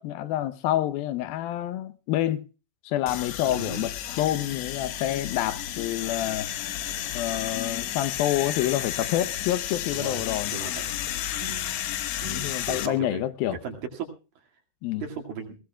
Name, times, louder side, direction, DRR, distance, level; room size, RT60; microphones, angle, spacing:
voice 1, 0.0-2.4 2.8-6.5 7.1-10.6 12.2-13.6 14.8-15.0, left 13 dB, 90° left, 2.7 m, -28 dB
sound 1, 3.1-12.9, left 11 dB, 70° left, 1.8 m, -32 dB
voice 2, 3.4-3.9 9.9-11.0 11.4-11.7 12.2-13.2 13.5-14.1 15.0-15.6, right 5 dB, 75° right, 3.9 m, -37 dB
20.5 x 17.5 x 2.3 m
omnidirectional pair, 4.1 m